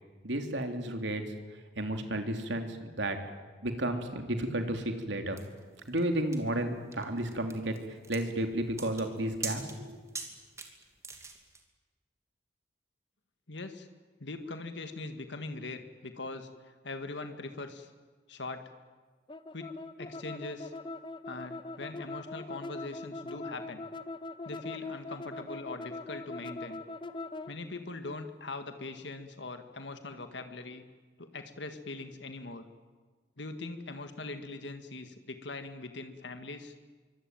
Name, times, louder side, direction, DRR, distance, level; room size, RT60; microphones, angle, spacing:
voice 1, 0.2-1.2 1.8-3.2 3.6-5.4 5.9-7.7 8.1-10.0, right 1 dB, 80° right, 5 dB, 3.1 m, -32 dB
sound 1, 5.4-11.6, right 4 dB, 15° right, 2.6 m, -43 dB
voice 2, 13.5-13.9 14.2-17.9 18.3-18.6 19.5-19.7 20.0-20.7 21.3-23.9 24.4-26.8 27.5-30.8 31.2-32.6 33.4-36.7, left 3 dB, 80° left, 7 dB, 1.8 m, -41 dB
sound 2, 19.3-27.5, left 2 dB, 25° left, 0.8 m, -41 dB
25.0 x 24.0 x 9.2 m, 1.4 s
head